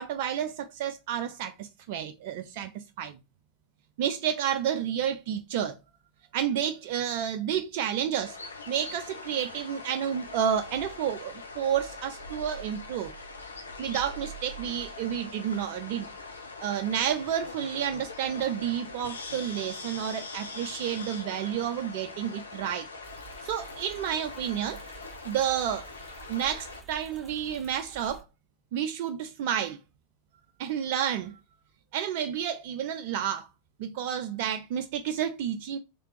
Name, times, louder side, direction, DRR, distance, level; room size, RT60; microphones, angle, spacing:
voice 1, 0.0-3.2 4.0-5.8 6.3-8.4 8.7-13.1 13.8-16.1 16.6-22.9 23.4-24.8 25.2-25.9 26.3-28.2 28.7-29.8 30.6-31.4 31.9-33.5 33.8-35.8, right 9 dB, 50° right, 0.4 m, -30 dB
sound 1, 8.2-26.8, left 3 dB, 75° left, 0.7 m, -42 dB
sound 2, 23.0-28.2, right 6 dB, ahead, 1.7 m, -50 dB
3.3 x 3.3 x 3.1 m
figure-of-eight pair, 90°, 0 cm